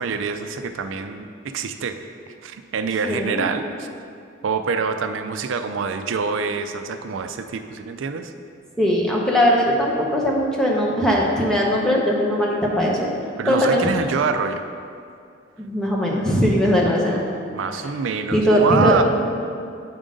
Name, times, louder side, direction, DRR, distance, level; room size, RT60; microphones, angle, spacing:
voice 1, 0.0-2.0 2.4-3.9 4.4-8.3 13.4-14.6 17.5-19.0, right 5 dB, 90° right, 8 dB, 0.4 m, -25 dB
voice 2, 3.0-3.4 8.8-13.1 13.5-13.8 15.6-17.2 18.3-19.0, equal, 5° left, -3 dB, 0.9 m, -19 dB
8.6 x 3.7 x 5.1 m, 2.4 s
head